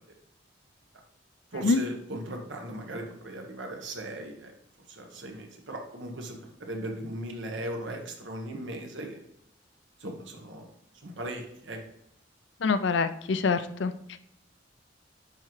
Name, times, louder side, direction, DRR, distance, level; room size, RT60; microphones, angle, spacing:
voice 1, 1.5-4.5 4.9-9.2 10.0-10.7 11.0-11.8, right 1 dB, 80° right, 2 dB, 1.2 m, -38 dB
voice 2, 12.6-14.2, left 4 dB, 70° left, 12 dB, 0.5 m, -26 dB
9.8 x 3.7 x 3.2 m, 0.78 s
head